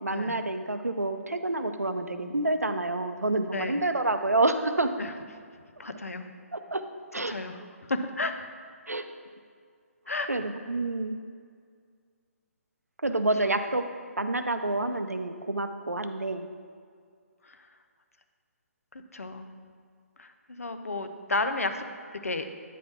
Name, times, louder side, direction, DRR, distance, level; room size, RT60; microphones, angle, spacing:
voice 1, 0.0-4.9 6.5-6.8 7.1-7.3 8.9-9.0 10.3-11.2 13.0-13.8 14.2-16.5, right 2 dB, 85° right, 9 dB, 0.5 m, -28 dB
voice 2, 3.5-3.8 5.0-5.1 5.8-6.2 7.3-8.5 10.1-10.3 13.4-13.6 17.4-17.7 18.9-19.5 20.2-21.8 22.2-22.5, left 2 dB, 70° left, 8 dB, 0.6 m, -32 dB
9.0 x 4.2 x 4.4 m, 2.1 s
figure-of-eight pair, 135°, 8 cm